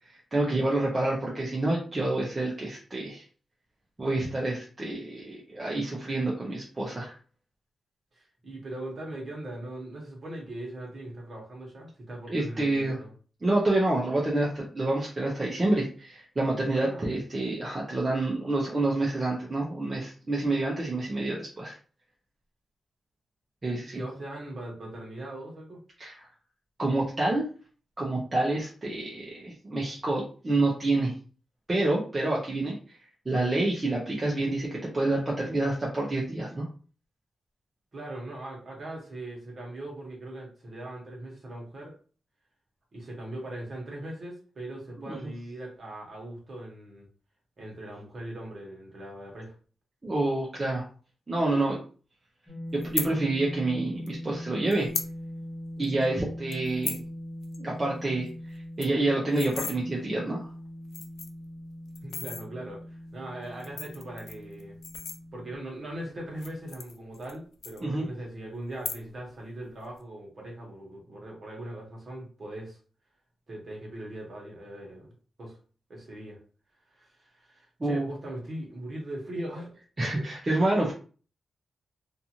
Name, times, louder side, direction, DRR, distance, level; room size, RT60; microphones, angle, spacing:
voice 1, 0.0-3.2 4.0-7.2 12.3-13.0 13.4-21.8 23.6-24.0 26.0-26.3 26.8-27.5 28.0-31.1 31.7-33.0 33.3-36.7 45.1-45.2 50.0-50.9 51.3-51.8 52.7-54.9 55.8-57.0 57.6-58.3 58.8-60.5 67.8-68.1 77.8-78.1 80.0-80.9, right 2 dB, 25° right, -3 dB, 0.6 m, -28 dB
voice 2, 8.1-13.1 16.7-17.1 23.9-25.8 37.9-42.0 42.9-47.1 47.6-49.5 62.0-62.8 63.1-64.8 65.3-72.8 73.5-75.1 75.4-75.6 75.9-76.4 76.9-79.8 80.1-80.3, right 1 dB, 45° right, -1 dB, 1.0 m, -40 dB
sound 1, 52.5-65.6, equal, 10° left, 1.1 m, -41 dB
sound 2, 52.8-53.1 54.1-54.2 54.7-55.1 55.5-55.6 55.8-56.0 56.5-57.1 57.4-57.6 57.9-58.0 58.3-58.4 58.6-59.8 60.4-60.5 60.8-61.4 61.9-62.4 63.4-65.6 66.3-67.4 67.6-68.3 68.7-69.3 69.6-70.0, left 6 dB, 85° left, 0.3 m, -36 dB
2.5 x 2.5 x 2.8 m, 0.39 s
wide cardioid pair, 145°, 0 cm